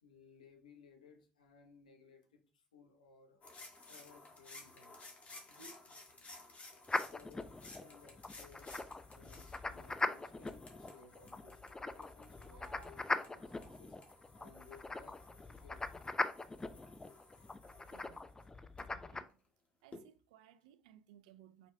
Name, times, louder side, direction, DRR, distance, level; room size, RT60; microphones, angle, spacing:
voice 1, 0.0-3.4 3.9-5.0 5.5-6.4 7.0-8.7 9.1-14.0 14.4-15.2 15.5-16.0, left 4 dB, 85° left, 0.9 m, -61 dB
sound 1, 3.4-18.8 19.9-20.0, left 2 dB, 35° left, 1.5 m, -57 dB
sound 2, 6.9-19.2, left 3 dB, 15° left, 0.5 m, -41 dB
sound 3, 12.1-16.4, right 4 dB, 40° right, 1.1 m, -64 dB
voice 2, 17.9-18.3 18.9-19.4 19.8-21.7, right 11 dB, 75° right, 0.4 m, -62 dB
5.0 x 4.7 x 2.2 m
hypercardioid pair, 60°, 4 cm